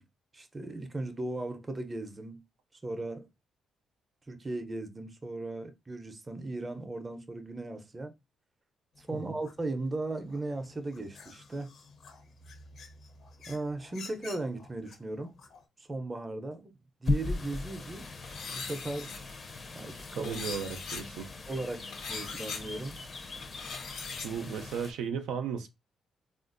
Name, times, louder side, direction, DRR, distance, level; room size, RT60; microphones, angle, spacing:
voice 1, 0.3-2.4 2.8-3.3 4.3-8.1 9.0-11.7 13.5-15.3 15.8-16.7 17.0-18.1 18.5-19.4 19.7-20.4 21.5-23.0, right 2 dB, 25° right, 0.6 m, -37 dB
sound 1, 8.9-15.7, left 4 dB, 65° left, 0.9 m, -52 dB
sound 2, 17.0-24.9, left 3 dB, 35° left, 0.6 m, -38 dB
sound 3, 18.2-19.2 20.2-21.0 21.9-22.6 23.4-24.3, left 5 dB, 90° left, 1.1 m, -40 dB
voice 2, 20.2-21.3 24.2-25.7, right 7 dB, 85° right, 0.5 m, -35 dB
3.5 x 2.4 x 2.5 m
cardioid pair, 90°, 0 cm